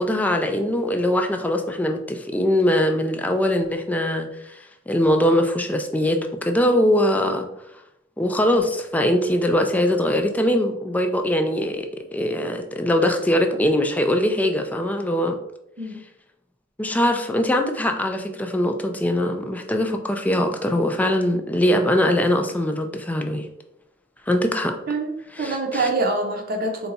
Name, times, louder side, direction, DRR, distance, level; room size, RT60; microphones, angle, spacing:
voice 1, 0.0-7.5 8.2-15.4 16.8-23.5 24.3-24.8 25.3-25.9, left 1 dB, 10° left, 4 dB, 0.3 m, -22 dB
voice 2, 24.9-26.9, right 2 dB, 50° right, 3 dB, 0.7 m, -25 dB
3.9 x 2.3 x 4.0 m, 0.83 s
head